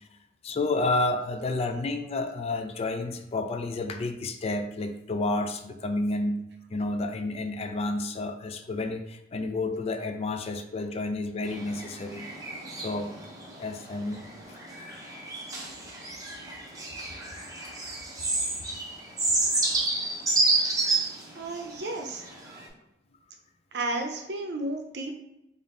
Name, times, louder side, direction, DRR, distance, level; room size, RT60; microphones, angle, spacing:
voice 1, 0.4-6.4 6.7-12.3 12.8-13.1 13.6-14.2 14.5-14.6 19.5-19.7 20.6-21.0, left 2 dB, 35° left, 7 dB, 0.3 m, -30 dB
sound 1, 11.5-22.7, right 2 dB, 20° right, 0.7 m, -30 dB
voice 2, 21.3-22.2 23.7-25.1, right 2 dB, 65° right, 3 dB, 0.6 m, -32 dB
3.5 x 2.6 x 3.7 m, 0.85 s
head